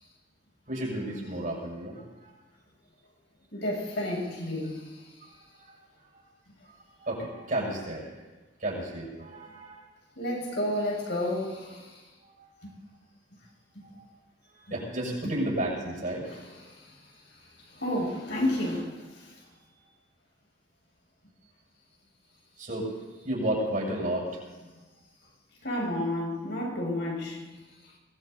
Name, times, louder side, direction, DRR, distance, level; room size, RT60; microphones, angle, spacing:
voice 1, 0.7-2.0 7.0-8.1 8.6-9.8 12.3-12.5 14.5-16.3 22.6-22.9 23.2-24.4, right 1 dB, 45° right, -4 dB, 6.7 m, -32 dB
voice 2, 3.5-4.9 10.2-12.0 12.6-12.7 15.2-15.3 16.3-16.9 17.7-19.3 25.6-27.4, left 1 dB, 70° left, -2 dB, 6.9 m, -31 dB
23.5 x 19.0 x 2.7 m, 1.2 s
head